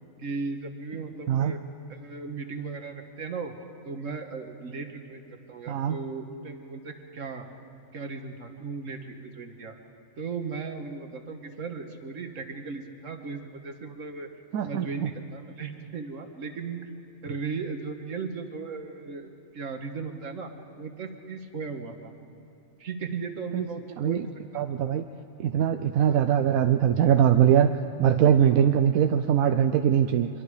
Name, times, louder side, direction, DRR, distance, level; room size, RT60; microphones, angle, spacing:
voice 1, 0.2-1.6 1.9-3.5 3.8-7.5 7.9-9.7 10.2-14.3 14.6-16.9 17.2-20.5 20.8-22.1 22.8-24.7 26.1-26.2 28.4-28.7, right 4 dB, 70° right, 5 dB, 1.8 m, -37 dB
voice 2, 14.5-15.1 23.5-23.7 24.0-24.2 24.5-25.1 25.4-27.7 28.0-30.3, right 9 dB, 90° right, 8 dB, 1.1 m, -22 dB
25.0 x 22.5 x 4.9 m, 2.9 s
omnidirectional pair, 1.4 m